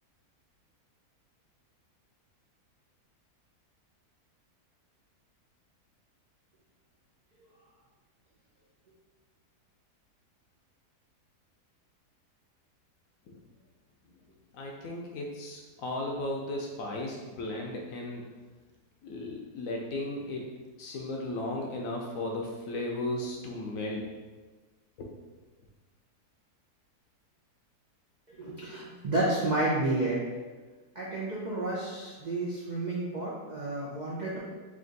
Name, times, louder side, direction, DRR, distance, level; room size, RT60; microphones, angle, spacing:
voice 1, 14.5-18.2 19.0-20.5 20.8-24.1 25.0-25.1, left 2 dB, 70° left, 0 dB, 0.8 m, -35 dB
voice 2, 28.3-30.2 30.9-34.4, right 2 dB, 85° right, -7 dB, 0.4 m, -31 dB
3.3 x 2.5 x 3.8 m, 1.3 s
omnidirectional pair, 1.7 m